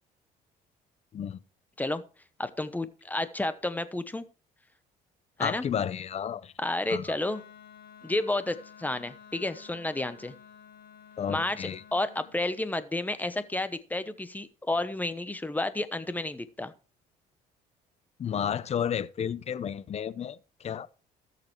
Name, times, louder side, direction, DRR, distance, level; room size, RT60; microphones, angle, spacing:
voice 1, 2.4-4.2 5.4-5.6 6.6-7.4 8.0-10.3 11.3-16.7, left 2 dB, 10° left, 0.9 m, -31 dB
voice 2, 5.4-6.5 6.9-7.1 11.2-11.8 18.2-20.9, left 8 dB, 40° left, 0.6 m, -32 dB
Wind instrument woodwind instrument, 7.2-12.4, left 7 dB, 70° left, 4.6 m, -52 dB
17.5 x 6.8 x 3.2 m
cardioid pair, 110°, 17 cm